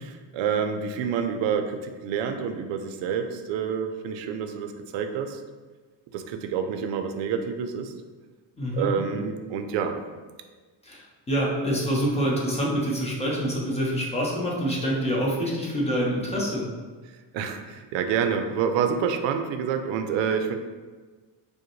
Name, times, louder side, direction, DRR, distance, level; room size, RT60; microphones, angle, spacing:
voice 1, 0.3-5.4 6.1-7.9 8.7-9.9 17.3-20.6, right 7 dB, 85° right, 6 dB, 0.5 m, -28 dB
voice 2, 8.6-8.9 10.8-16.6, equal, 15° left, -4 dB, 0.7 m, -26 dB
4.9 x 2.1 x 3.1 m, 1.4 s
cardioid pair, 140°, 44 cm